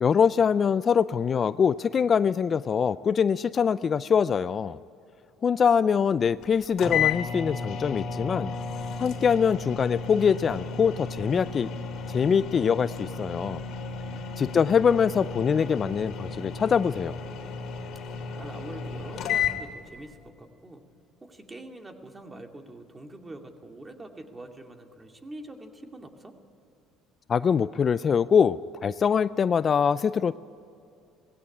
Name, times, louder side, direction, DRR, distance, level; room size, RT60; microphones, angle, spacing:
voice 1, 0.0-4.8 5.4-8.5 9.0-11.7 12.1-13.6 14.4-17.2 27.3-30.4, left 7 dB, 40° left, 16 dB, 0.4 m, -23 dB
sound 1, 6.4-6.5 6.8-19.6, left 6 dB, 60° left, 2.4 m, -33 dB
voice 2, 14.0-14.5 18.3-20.8 21.2-26.3, right 1 dB, 20° right, 4 dB, 2.4 m, -44 dB
19.0 x 16.0 x 9.8 m, 2.5 s
supercardioid pair, 75°, 0 cm